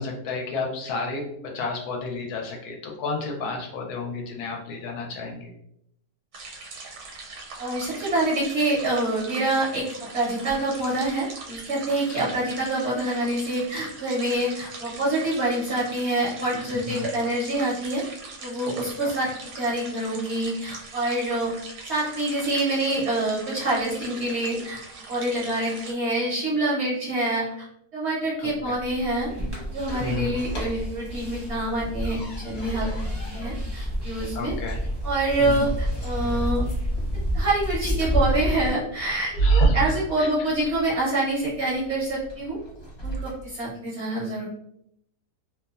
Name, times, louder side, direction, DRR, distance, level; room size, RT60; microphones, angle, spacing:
voice 1, 0.0-5.5 12.1-12.3 16.8-17.0 19.0-19.3 28.4-28.7 30.0-30.3 34.3-34.8 35.4-35.7 39.3-40.3, left 4 dB, 75° left, 1 dB, 1.1 m, -32 dB
sound 1, 6.3-25.9, right 3 dB, 75° right, 1.2 m, -41 dB
voice 2, 7.6-18.0 18.4-21.5 21.9-24.8 25.1-27.7 27.9-29.3 29.7-32.9 33.3-34.5 35.0-36.7 37.3-42.6 43.0-44.4, right 1 dB, 60° right, -6 dB, 0.7 m, -26 dB
sound 2, 28.5-43.6, right 4 dB, 55° left, 1.1 m, -32 dB
sound 3, 29.3-38.7, equal, 25° right, 0.5 m, -29 dB
2.7 x 2.1 x 2.3 m, 0.74 s
omnidirectional pair, 1.7 m